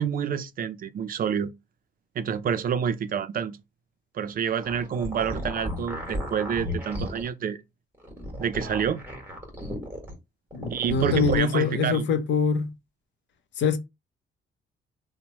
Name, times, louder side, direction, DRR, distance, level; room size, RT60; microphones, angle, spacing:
voice 1, 0.0-1.5 2.2-3.6 4.1-7.6 8.4-9.0 10.7-12.1, right 7 dB, 45° right, 0.4 m, -28 dB
sound 1, 4.5-7.3 8.0-10.1 10.5-11.4, left 1 dB, 10° right, 1.4 m, -34 dB
voice 2, 10.5-12.7 13.6-13.8, left 5 dB, 65° left, 0.6 m, -24 dB
2.9 x 2.1 x 2.8 m
cardioid pair, 90°, 20 cm